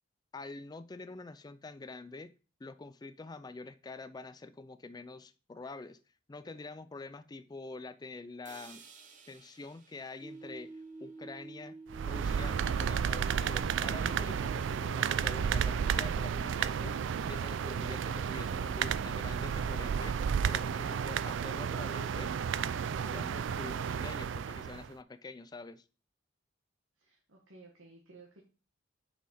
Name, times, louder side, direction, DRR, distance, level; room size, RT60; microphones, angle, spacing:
voice 1, 0.3-2.3 2.6-6.0 6.3-8.9 9.3-11.7 12.0-17.0 17.2-22.3 22.7-25.8, left 3 dB, 20° left, 13 dB, 0.3 m, -46 dB
sound 1, 8.4-12.5, right 5 dB, 40° right, 1.0 m, -58 dB
sound 2, 10.2-16.2, right 3 dB, 20° right, 0.6 m, -50 dB
sound 3, 11.9-24.9, right 7 dB, 65° right, 0.3 m, -32 dB
voice 2, 27.0-28.4, right 3 dB, 85° right, -2 dB, 1.5 m, -56 dB
6.0 x 5.6 x 4.2 m, 0.36 s
head